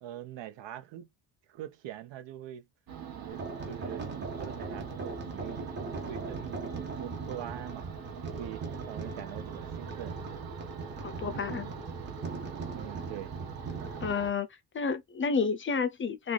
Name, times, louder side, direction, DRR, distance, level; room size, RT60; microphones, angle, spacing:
voice 1, 0.0-1.1 1.5-2.7 3.1-5.7 6.1-7.9 8.2-10.5 11.3-11.6 12.2-12.4 12.7-13.4, right 11 dB, 85° right, 0.8 m, -43 dB
sound 1, 2.9-14.3, right 7 dB, 55° right, 1.2 m, -44 dB
sound 2, 3.3-14.1, right 3 dB, 25° right, 1.1 m, -40 dB
voice 2, 11.0-11.7 14.0-14.5 14.7-16.3, left 5 dB, 30° left, 0.4 m, -30 dB
3.1 x 2.4 x 3.8 m
cardioid pair, 155°, 42 cm